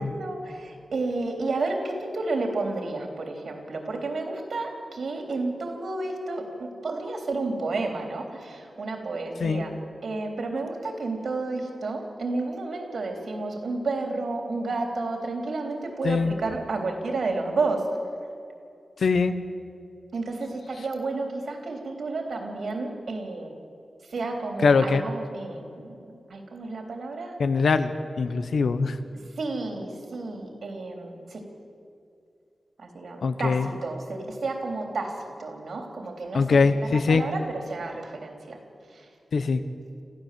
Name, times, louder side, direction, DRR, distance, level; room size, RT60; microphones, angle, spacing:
voice 1, 0.0-9.8 10.0-18.0 20.1-23.5 24.1-26.0 26.3-27.4 29.4-31.4 32.8-38.6 38.9-39.1, right 3 dB, 75° right, 3 dB, 3.6 m, -31 dB
voice 2, 19.0-19.4 24.6-25.0 27.4-29.0 33.2-33.7 36.3-37.2 39.3-39.6, left 4 dB, 80° left, 10 dB, 1.2 m, -22 dB
27.0 x 15.0 x 7.7 m, 2.5 s
wide cardioid pair, 120°, 0 cm